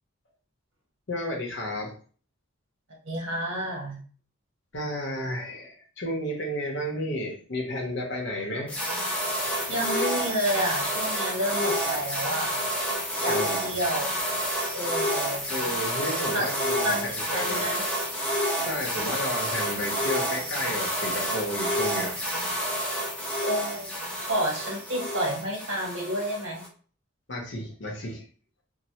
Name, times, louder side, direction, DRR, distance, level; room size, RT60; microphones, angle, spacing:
voice 1, 1.1-2.0 4.7-8.8 13.3-13.7 15.5-17.6 18.7-22.1 27.3-28.2, equal, 60° left, -1 dB, 0.8 m, -32 dB
voice 2, 3.0-4.0 9.7-12.6 13.2-14.0 14.7-15.5 16.3-16.5 16.8-17.8 23.4-26.6, right 1 dB, 65° right, -1 dB, 1.2 m, -30 dB
sound 1, 8.7-26.7, equal, 5° left, 0.5 m, -29 dB
3.1 x 2.1 x 2.8 m, 0.42 s
head